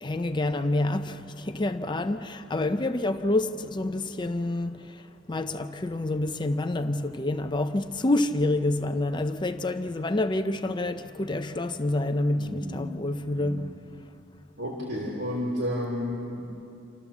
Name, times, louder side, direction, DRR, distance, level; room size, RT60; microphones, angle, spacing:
voice 1, 0.0-13.8, left 2 dB, 25° left, 0.6 m, -28 dB
voice 2, 12.3-12.9 13.3-13.6 14.6-16.6, equal, 90° right, 3.0 m, -32 dB
28.5 x 13.5 x 7.2 m
head